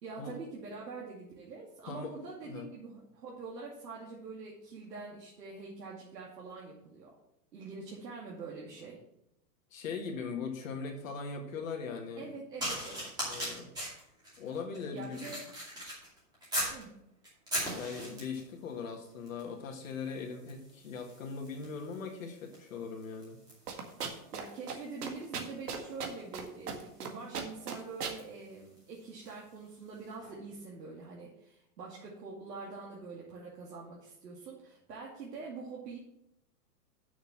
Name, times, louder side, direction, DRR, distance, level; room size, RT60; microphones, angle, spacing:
voice 1, 0.0-7.1 7.5-9.0 12.2-13.1 14.9-15.5 16.7-16.9 24.3-36.0, right 4 dB, 85° right, -4 dB, 2.6 m, -45 dB
voice 2, 1.9-2.7 9.7-12.2 13.2-13.7 14.4-15.4 17.8-23.4, left 5 dB, 55° left, 2 dB, 1.7 m, -40 dB
sound 1, 12.6-16.8 17.2-18.5 19.3-19.5 19.8-29.5 30.2-30.3, equal, 10° right, 2.5 m, -41 dB
sound 2, 23.7-24.4 24.7-24.8 25.0-26.4 26.7-27.1 27.3-28.2, right 6 dB, 70° right, 2.0 m, -36 dB
6.5 x 6.5 x 7.5 m, 0.79 s
hypercardioid pair, 175°, 48 cm